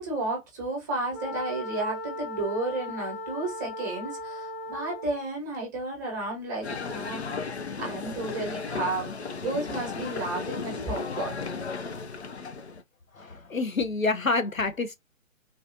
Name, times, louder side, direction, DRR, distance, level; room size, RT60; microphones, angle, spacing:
voice 1, 0.0-7.3 7.8-9.1 9.4-11.4, right 2 dB, 15° right, 1.1 m, -32 dB
Wind instrument woodwind instrument, 1.1-5.3, left 2 dB, 10° left, 0.9 m, -37 dB
sound 1, 6.6-12.8, left 4 dB, 55° left, 0.7 m, -35 dB
voice 2, 13.1-15.0, left 3 dB, 75° left, 1.0 m, -27 dB
4.0 x 2.6 x 2.7 m
figure-of-eight pair, 140°, 40 cm